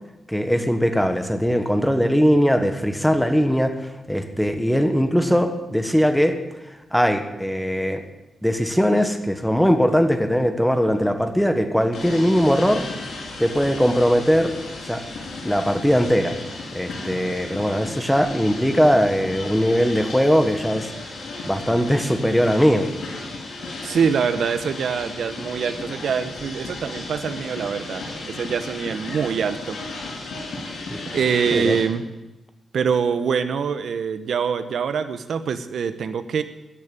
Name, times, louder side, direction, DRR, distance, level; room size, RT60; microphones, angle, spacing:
voice 1, 0.3-6.4 6.9-8.0 8.4-12.9 13.4-14.5 14.9-15.0 15.4-16.4 16.7-20.9 21.4-22.9 30.9-31.0 31.5-31.8, equal, ahead, 7 dB, 1.2 m, -20 dB
sound 1, 11.9-31.8, left 2 dB, 75° left, 6.3 m, -35 dB
voice 2, 23.8-29.8 31.1-32.0 32.7-36.4, right 6 dB, 60° right, 11 dB, 1.0 m, -24 dB
14.0 x 10.5 x 9.0 m, 1.0 s
wide cardioid pair, 180°, 0 cm